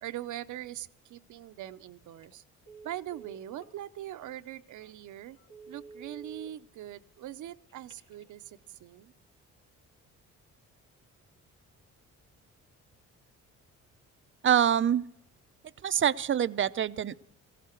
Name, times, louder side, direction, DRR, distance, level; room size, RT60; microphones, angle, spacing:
voice 1, 0.0-2.4 2.8-5.4 5.7-9.1, right 13 dB, 75° right, 11 dB, 0.8 m, -42 dB
Telephone, 2.1-2.3 2.6-3.7 4.3-4.4 4.8-4.9 5.4-6.5 7.7-8.3, right 3 dB, 80° left, 3.0 m, -50 dB
voice 2, 14.4-15.0 15.8-17.1, right 9 dB, 40° right, 14 dB, 0.6 m, -25 dB
17.5 x 15.5 x 4.5 m, 0.71 s
cardioid pair, 90°, 30 cm